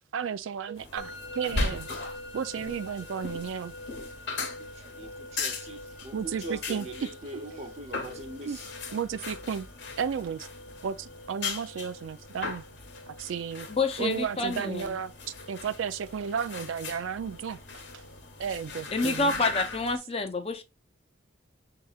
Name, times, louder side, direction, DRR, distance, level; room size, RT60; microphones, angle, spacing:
voice 1, 0.1-1.9 2.3-3.8 6.1-7.4 8.4-8.6 8.9-9.7 10.0-10.5 10.8-12.6 13.1-13.7 14.0-15.1 15.5-17.6 17.9-18.0 18.4-19.4, right 7 dB, 80° right, 0.4 m, -33 dB
sound 1, 0.8-20.0, left 3 dB, 60° left, 1.0 m, -39 dB
Musical instrument, 1.0-19.9, left 1 dB, 75° left, 1.2 m, -47 dB
voice 2, 4.9-5.8 6.0-8.6 14.6-14.7, right 2 dB, 35° right, 0.8 m, -42 dB
voice 3, 13.7-15.0 18.9-20.6, left 3 dB, 30° left, 0.5 m, -28 dB
6.5 x 2.8 x 2.3 m
head